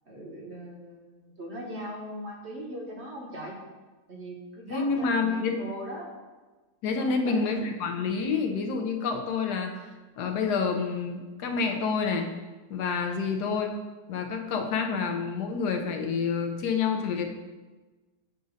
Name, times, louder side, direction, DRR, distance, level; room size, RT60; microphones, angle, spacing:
voice 1, 0.0-3.6 4.1-6.1 7.0-7.4 13.0-13.3, equal, 45° right, -2 dB, 1.2 m, -40 dB
voice 2, 4.7-5.6 6.8-9.8 10.2-12.3 12.7-13.7 14.1-17.3, left 5 dB, 75° left, 3 dB, 1.3 m, -28 dB
8.1 x 2.7 x 5.0 m, 1.2 s
omnidirectional pair, 1.8 m